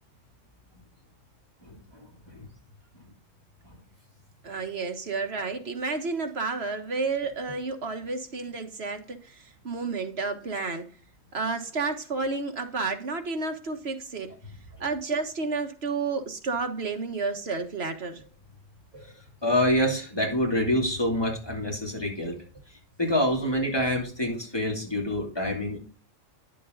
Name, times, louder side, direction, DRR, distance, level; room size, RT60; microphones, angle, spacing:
voice 1, 4.4-10.8 11.3-14.3 14.8-18.2 18.9-19.0 22.3-22.4, right 4 dB, 55° right, 1.6 m, -31 dB
voice 2, 19.4-22.3 23.0-25.8, left 1 dB, 20° left, 2.8 m, -26 dB
10.0 x 7.6 x 3.9 m
omnidirectional pair, 1.3 m